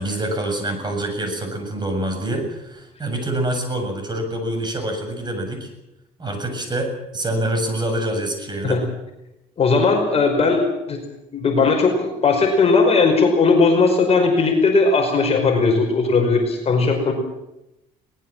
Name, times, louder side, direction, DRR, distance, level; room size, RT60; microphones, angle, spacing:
voice 1, 0.0-5.7 6.2-8.8, right 1 dB, 25° right, 5 dB, 7.5 m, -26 dB
voice 2, 9.6-11.0 11.3-17.1, left 4 dB, 35° left, 3 dB, 5.2 m, -18 dB
23.0 x 20.0 x 7.6 m, 0.89 s
cardioid pair, 110°, 17 cm